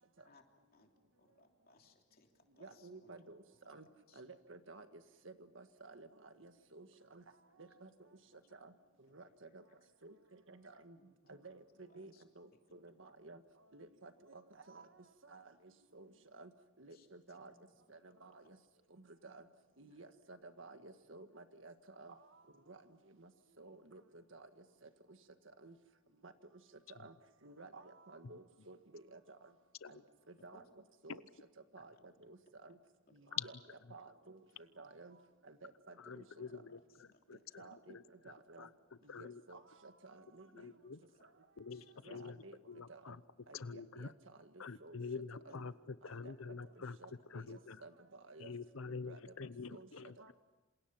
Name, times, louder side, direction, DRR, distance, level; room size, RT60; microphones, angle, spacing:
voice 1, 1.2-3.2 3.6-3.7 4.1-4.2 9.4-9.5 10.9-11.3 11.9-12.2 12.5-12.7 13.1-13.2 16.9-18.1 18.4-18.5 19.9-20.0 30.4-30.6 31.7-32.3 32.7-32.8 33.1-33.4 34.0-34.1 36.4-37.8 38.3-38.4 41.1-41.3 41.7-42.0 45.4-45.6 46.1-46.2, left 3 dB, 45° left, 3 dB, 3.1 m, -68 dB
voice 2, 2.6-3.9 4.2-7.2 7.6-7.9 8.5-8.7 9.1-9.6 10.0-11.0 11.3-13.4 13.7-14.4 14.7-14.9 15.2-15.5 15.9-16.5 16.8-17.5 17.9-18.6 18.9-19.4 19.8-22.2 22.7-22.8 23.2-23.3 23.6-24.5 25.6-25.8 26.2-26.3 26.9-27.1 27.4-29.4 29.9-30.0 30.4-30.6 31.0-31.2 31.7-31.9 32.2-32.8 33.1-33.4 33.9-34.4 34.8-35.2 35.4-36.2 37.6-38.0 38.2-38.7 39.0-40.7 41.2-41.3 42.1-42.6 42.9-43.2 43.5-43.6 44.0-44.1 44.4-44.5 44.8-45.0 45.5-45.7 46.0-46.5 47.0-48.5 48.9-49.2 49.7-50.3, right 3 dB, 70° right, 8 dB, 1.7 m, -54 dB
voice 3, 36.0-39.4 40.5-41.0 41.6-43.2 43.5-44.1 44.6-47.0 47.3-47.8 48.4-50.2, left 5 dB, 85° left, 15 dB, 0.8 m, -47 dB
27.5 x 27.5 x 5.9 m, 1.1 s
head